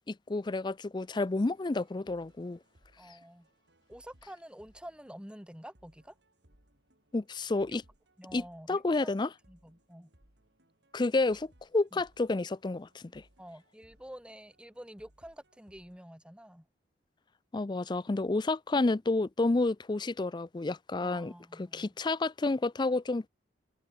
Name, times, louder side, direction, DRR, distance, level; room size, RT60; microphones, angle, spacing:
voice 1, 0.1-2.6 7.1-7.8 8.3-9.3 10.9-11.5 11.7-13.2 17.5-23.3, left 2 dB, 25° left, 0.4 m, -30 dB
sound 1, 1.5-16.0, right 1 dB, 65° right, 5.0 m, -67 dB
voice 2, 3.0-3.5 3.9-6.1 7.7-7.8 8.2-9.2 9.5-10.1 11.9-12.0 13.4-16.6 21.0-21.9, equal, 5° right, 3.8 m, -49 dB
head